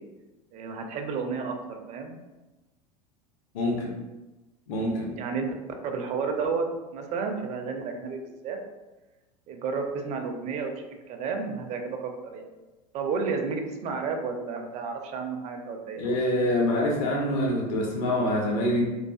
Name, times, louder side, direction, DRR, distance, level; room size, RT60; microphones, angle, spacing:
voice 1, 0.5-2.2 5.1-5.5 5.8-6.7 6.9-8.6 9.5-12.0 12.2-12.5 12.9-16.0, right 5 dB, 35° right, 3 dB, 0.4 m, -31 dB
voice 2, 3.5-4.0 4.7-5.2 16.0-18.8, left 1 dB, 55° left, -1 dB, 0.6 m, -25 dB
3.1 x 2.3 x 2.3 m, 1.1 s
figure-of-eight pair, 85°, 21 cm